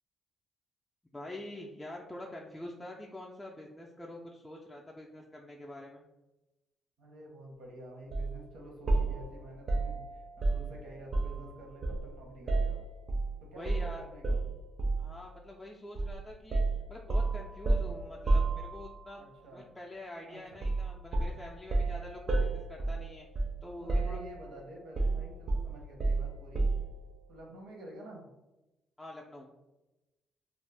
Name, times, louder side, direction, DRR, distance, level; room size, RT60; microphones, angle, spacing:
voice 1, 1.1-6.1 13.6-14.0 15.0-16.6 16.9-19.2 19.5-23.3 23.6-24.2 29.0-29.5, left 1 dB, 10° left, -2 dB, 0.3 m, -45 dB
voice 2, 7.0-12.8 13.4-14.4 19.2-19.7 20.3-20.6 23.8-26.7 27.3-28.3, right 1 dB, 85° right, 0 dB, 0.8 m, -49 dB
sound 1, 8.1-8.3 8.9-11.5 11.8-13.3 13.7-13.9 14.2-15.1 16.0-16.2 16.5-19.1 20.6-20.9 21.1-23.6 23.9-24.5 25.0-26.9, right 2 dB, 55° right, 0.5 m, -31 dB
2.4 x 2.0 x 3.3 m, 1.0 s
cardioid pair, 90°, 0 cm